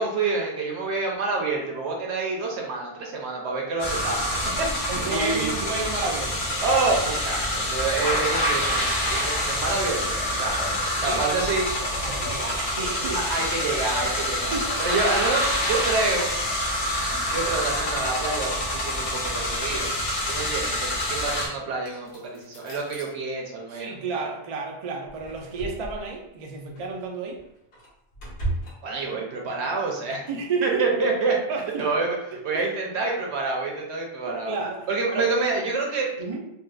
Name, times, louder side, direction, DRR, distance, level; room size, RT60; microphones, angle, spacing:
voice 1, 0.0-5.5 6.6-10.1 10.4-10.7 11.0-11.6 13.1-14.5 14.8-16.3 17.3-19.9 20.3-24.3 28.8-30.2 30.6-31.3 31.8-34.5 34.9-36.1, right 3 dB, 85° right, 0 dB, 1.0 m, -27 dB
sound 1, 3.8-21.5, left 1 dB, 70° left, 1.1 m, -27 dB
voice 2, 4.9-6.5 11.0-11.5 12.0-13.2 14.2-14.8 15.1-15.2 23.7-27.4 30.1-31.1 31.5-31.9 32.3-32.4 34.3-35.3 36.2-36.4, right 4 dB, 50° right, 1 dB, 0.4 m, -31 dB
sound 2, 21.8-23.1 25.1-26.2 26.8-26.9 27.3-28.7, right 2 dB, 90° left, 1.3 m, -35 dB
3.8 x 2.3 x 2.4 m, 0.83 s
omnidirectional pair, 1.1 m